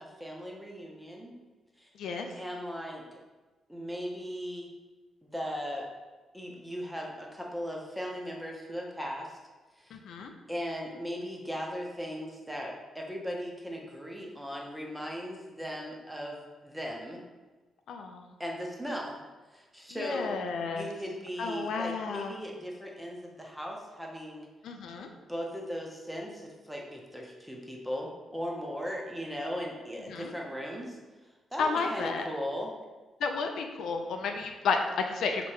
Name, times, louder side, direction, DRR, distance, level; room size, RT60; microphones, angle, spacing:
voice 1, 0.0-1.3 1.8-1.9 2.3-3.0 3.7-4.7 5.2-5.8 6.3-9.4 9.8-10.0 10.5-16.4 16.6-17.2 18.4-19.2 19.5-20.5 20.7-24.5 25.3-31.0 31.5-32.7, equal, 5° right, -1 dB, 0.6 m, -38 dB
voice 2, 9.9-10.3 17.9-18.3 20.0-20.9 21.4-22.3 24.6-25.1 30.1-30.3 31.6-32.3 33.2-35.5, left 4 dB, 75° left, 4 dB, 0.4 m, -32 dB
3.2 x 2.9 x 4.7 m, 1.2 s
cardioid pair, 130°, 0 cm